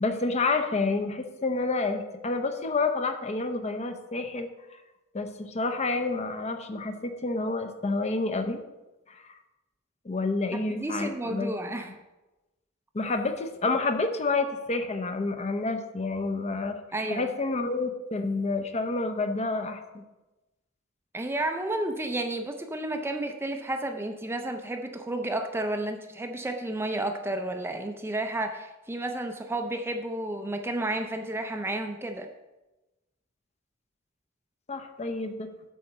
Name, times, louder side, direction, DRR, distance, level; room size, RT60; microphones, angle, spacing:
voice 1, 0.0-4.5 5.1-8.6 9.1-9.2 10.0-11.5 12.9-16.8 17.1-20.0 34.7-35.5, left 3 dB, 30° left, 7 dB, 0.6 m, -29 dB
voice 2, 10.5-11.9 16.9-17.3 21.1-32.3, right 1 dB, 10° right, 5 dB, 0.5 m, -31 dB
8.5 x 4.1 x 6.7 m, 1.0 s
head